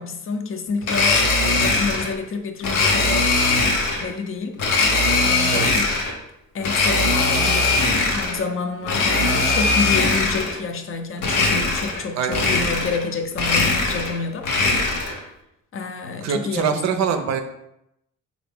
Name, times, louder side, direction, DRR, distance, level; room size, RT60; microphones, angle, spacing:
voice 1, 0.0-3.3 4.0-4.6 5.2-6.0 6.5-14.5 15.0-15.2 15.7-16.7, left 4 dB, 45° left, 6 dB, 0.6 m, -29 dB
Domestic sounds home sounds, 0.8-2.1 2.6-4.1 4.6-6.2 6.6-8.4 8.8-10.6 11.2-12.0 12.3-13.1 13.3-15.2, left 3 dB, 85° left, 0.7 m, -20 dB
voice 2, 5.5-5.8 12.2-12.7 16.2-17.4, right 7 dB, 65° right, 6 dB, 0.5 m, -24 dB
3.8 x 2.5 x 3.4 m, 0.82 s
cardioid pair, 90°, 30 cm